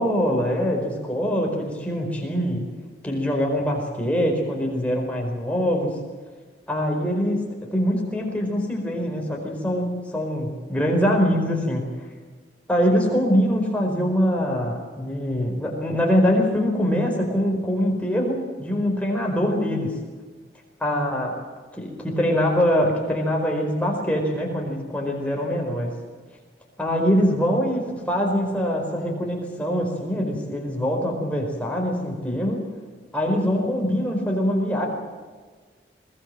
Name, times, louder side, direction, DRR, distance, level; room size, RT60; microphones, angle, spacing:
voice 1, 0.0-2.6 3.0-5.9 6.7-7.4 7.7-11.9 12.7-19.9 20.8-21.3 21.8-25.9 26.8-32.6 33.1-34.9, equal, 10° left, 0 dB, 4.8 m, -23 dB
22.5 x 19.0 x 7.6 m, 1.4 s
head